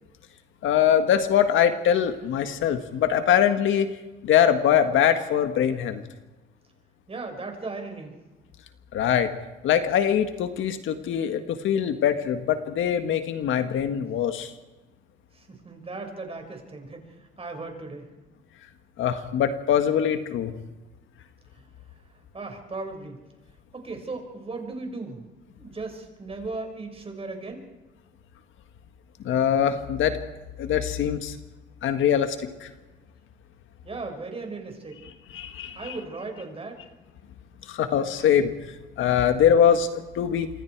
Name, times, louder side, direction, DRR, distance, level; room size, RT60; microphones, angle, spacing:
voice 1, 0.6-3.9 4.2-6.0 8.9-9.3 9.6-14.5 19.0-20.5 29.2-30.2 30.6-31.4 31.8-32.7 35.3-35.9 37.7-38.5 39.0-40.5, left 9 dB, 80° left, 8 dB, 1.7 m, -23 dB
voice 2, 7.1-8.2 15.3-18.1 21.6-21.7 22.3-23.2 23.7-25.2 25.6-27.6 33.8-35.0 35.7-36.8, right 3 dB, 30° right, 4 dB, 5.8 m, -37 dB
27.0 x 24.0 x 4.7 m, 1.1 s
cardioid pair, 90°, 20 cm